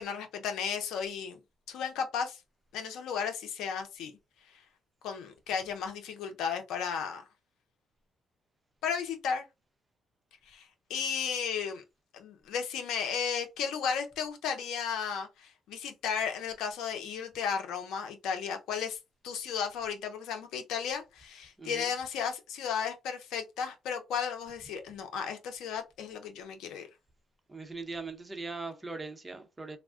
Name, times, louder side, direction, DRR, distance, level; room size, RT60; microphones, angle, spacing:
voice 1, 0.0-1.4 1.7-2.4 2.7-4.1 4.5-4.6 5.0-7.2 8.8-9.5 10.5-11.8 12.1-19.0 19.2-26.9, left 7 dB, 85° left, 0.6 m, -34 dB
voice 2, 27.5-29.8, right 3 dB, 20° right, 0.7 m, -40 dB
3.4 x 2.1 x 2.4 m
cardioid pair, 90°, 0 cm